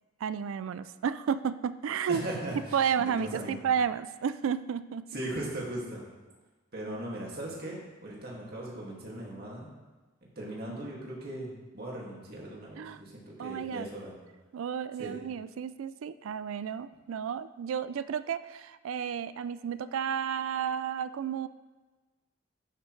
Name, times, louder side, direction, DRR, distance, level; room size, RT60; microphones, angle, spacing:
voice 1, 0.2-2.2 2.7-5.0 6.9-7.0 10.7-10.9 12.8-13.0 13.4-13.9 14.5-21.5, right 7 dB, 80° right, 14 dB, 0.3 m, -32 dB
voice 2, 2.1-3.6 5.1-6.0 6.7-9.7 10.4-14.1 15.0-15.1, right 1 dB, 50° right, -3 dB, 2.2 m, -38 dB
11.5 x 8.1 x 3.2 m, 1.2 s
head